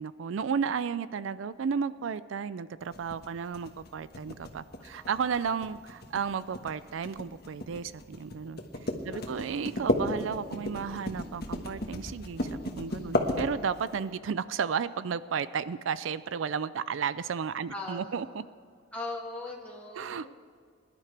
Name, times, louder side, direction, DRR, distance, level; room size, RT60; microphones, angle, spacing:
voice 1, 0.0-18.4 20.0-20.3, right 6 dB, 80° right, 16 dB, 0.4 m, -33 dB
sound 1, 2.9-14.0, left 1 dB, 55° left, 1.5 m, -33 dB
voice 2, 4.8-5.2 9.1-9.6 17.7-18.3 18.9-20.3, left 2 dB, 5° left, -4 dB, 1.9 m, -40 dB
22.0 x 11.5 x 3.4 m, 2.1 s
head